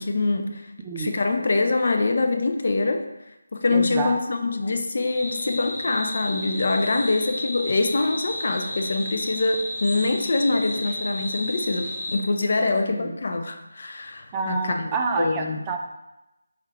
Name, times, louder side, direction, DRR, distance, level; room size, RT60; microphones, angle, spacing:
voice 1, 0.0-0.7 1.0-3.1 3.5-14.9 15.2-15.6, left 3 dB, 50° left, 5 dB, 0.4 m, -24 dB
voice 2, 3.7-4.2 12.9-13.2 14.3-15.8, right 4 dB, 15° right, 2 dB, 0.3 m, -28 dB
sound 1, 5.1-12.2, left 1 dB, 15° left, 1.1 m, -33 dB
4.5 x 2.3 x 3.3 m, 0.94 s
figure-of-eight pair, 160°, 0 cm